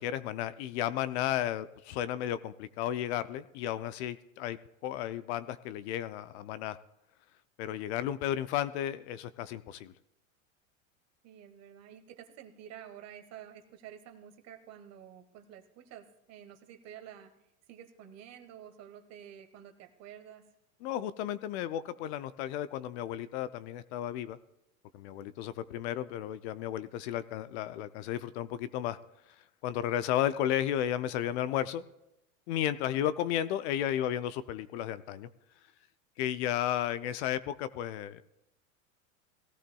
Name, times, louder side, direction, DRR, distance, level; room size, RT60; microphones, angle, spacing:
voice 1, 0.0-4.6 4.8-6.8 7.6-9.9 20.8-24.4 24.9-29.0 29.6-31.8 32.5-35.3 36.2-38.2, left 11 dB, 55° left, 14 dB, 0.6 m, -33 dB
voice 2, 11.2-17.3 17.7-20.4, right 9 dB, 40° right, 8 dB, 1.4 m, -50 dB
18.0 x 14.0 x 2.3 m, 0.89 s
hypercardioid pair, 110°, 40 cm